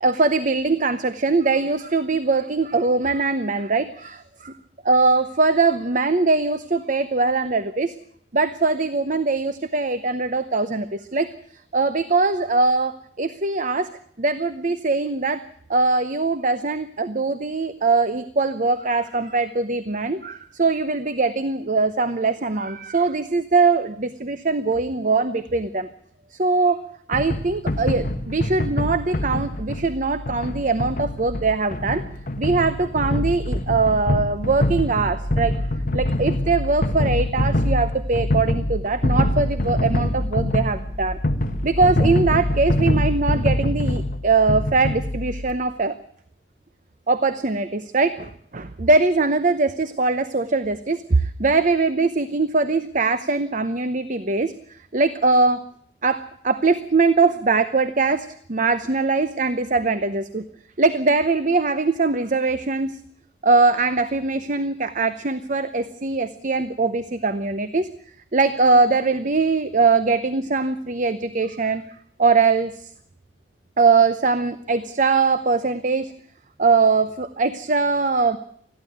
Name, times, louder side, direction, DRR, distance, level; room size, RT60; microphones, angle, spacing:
voice 1, 0.0-4.5 4.8-7.9 8.3-11.3 11.7-13.9 14.2-15.4 15.7-25.9 26.3-26.8 27.1-32.0 32.4-35.5 35.9-41.2 41.6-46.0 47.1-54.5 54.9-55.6 56.0-60.4 60.8-63.0 63.4-67.9 68.3-71.8 72.2-72.9 73.8-76.1 76.6-78.4, right 3 dB, 40° right, 11 dB, 0.8 m, -21 dB
sound 1, 27.1-45.5, left 1 dB, 45° left, 1.3 m, -24 dB
21.0 x 14.5 x 9.3 m, 0.67 s
head